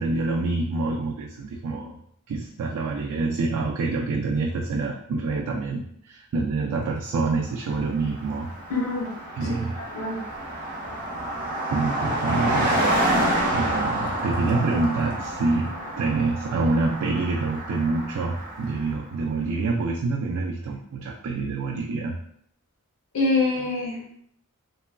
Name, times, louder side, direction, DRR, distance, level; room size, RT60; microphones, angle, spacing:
voice 1, 0.0-2.0 2.3-8.5 9.4-9.8 11.7-12.8 13.5-22.1, right 3 dB, 80° right, 0 dB, 0.3 m, -26 dB
Car passing by, 7.7-7.8 8.0-19.0, right 1 dB, 40° right, 0.7 m, -28 dB
voice 2, 8.7-9.1 9.5-9.6 9.9-10.2 23.1-24.1, left 3 dB, 70° left, -5 dB, 1.0 m, -25 dB
3.0 x 2.4 x 2.2 m, 0.68 s
head